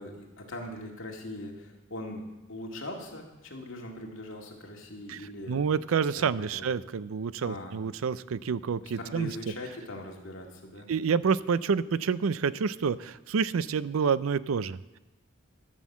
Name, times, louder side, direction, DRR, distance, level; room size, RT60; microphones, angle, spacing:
voice 1, 0.0-6.7 7.4-7.8 8.8-10.9, left 1 dB, 70° left, 0 dB, 2.1 m, -41 dB
voice 2, 5.5-9.3 10.9-15.0, right 6 dB, 90° right, 17 dB, 0.4 m, -28 dB
13.0 x 6.3 x 7.3 m, 1.0 s
head